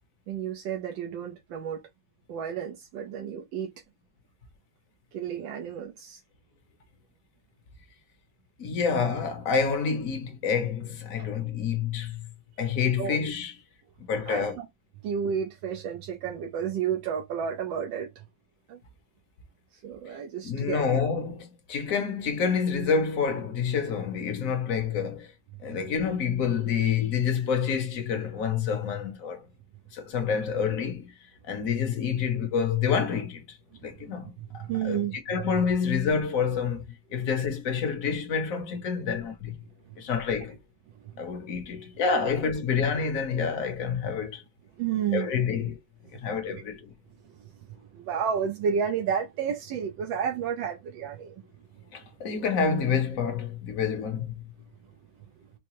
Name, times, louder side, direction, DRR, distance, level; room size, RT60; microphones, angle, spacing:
voice 1, 0.3-1.8 2.3-3.7 5.1-6.2 11.2-11.3 13.0-13.2 14.2-14.7 15.0-18.2 18.7-18.8 19.7-20.9 33.8-33.9 34.4-35.6 39.8-40.0 40.9-41.5 44.8-45.4 46.1-46.2 46.5-46.6 47.3-47.6 47.9-51.4, right 8 dB, 85° right, 1.4 m, -32 dB
voice 2, 8.6-12.3 12.6-13.5 14.1-14.6 20.4-25.3 25.6-29.4 29.9-31.1 31.5-33.6 33.8-35.0 35.3-39.6 40.0-40.6 41.2-44.4 45.1-45.8 46.1-46.9 51.9-54.3, left 6 dB, 55° left, 1.1 m, -28 dB
4.7 x 2.1 x 3.0 m
omnidirectional pair, 2.0 m